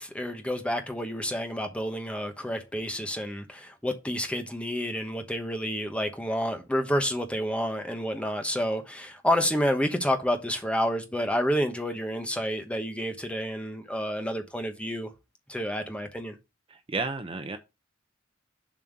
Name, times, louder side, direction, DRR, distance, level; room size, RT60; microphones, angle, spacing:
voice 1, 0.0-15.1 15.5-16.4, equal, 5° left, 1.1 m, -29 dB
voice 2, 16.7-17.6, right 3 dB, 25° right, 0.7 m, -32 dB
7.3 x 4.4 x 5.2 m
head